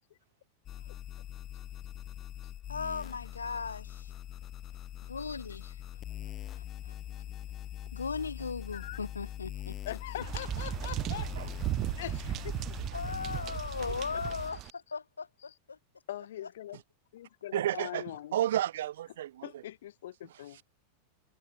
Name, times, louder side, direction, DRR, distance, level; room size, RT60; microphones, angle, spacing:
sound 1, 0.6-14.5, left 12 dB, 30° left, 1.3 m, -42 dB
voice 1, 2.7-4.1 5.0-5.8 6.5-6.9 7.9-10.2 11.7-11.9 12.9-15.8, left 5 dB, 75° left, 5.9 m, -38 dB
voice 2, 9.8-11.3 11.9-12.6 14.1-14.2 16.1-16.8 17.1-18.4 19.4-20.6, left 13 dB, 60° left, 7.8 m, -42 dB
sound 2, 10.2-14.7, right 15 dB, 35° right, 1.0 m, -36 dB
voice 3, 17.5-18.1 18.3-19.5, right 12 dB, 60° right, 1.9 m, -31 dB
figure-of-eight pair, 90°, 0 cm